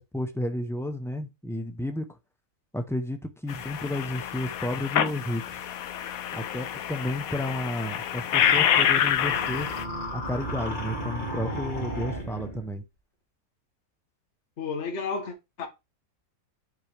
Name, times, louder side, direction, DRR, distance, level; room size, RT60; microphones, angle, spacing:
voice 1, 0.0-2.1 2.7-5.4 6.3-9.7 10.1-12.8, left 1 dB, 5° left, 0.3 m, -32 dB
sound 1, 3.5-9.8, left 9 dB, 70° left, 1.1 m, -27 dB
sound 2, 8.3-12.7, equal, 30° left, 2.2 m, -34 dB
voice 2, 14.6-15.7, left 5 dB, 50° left, 1.4 m, -32 dB
8.2 x 4.6 x 3.4 m
omnidirectional pair, 1.6 m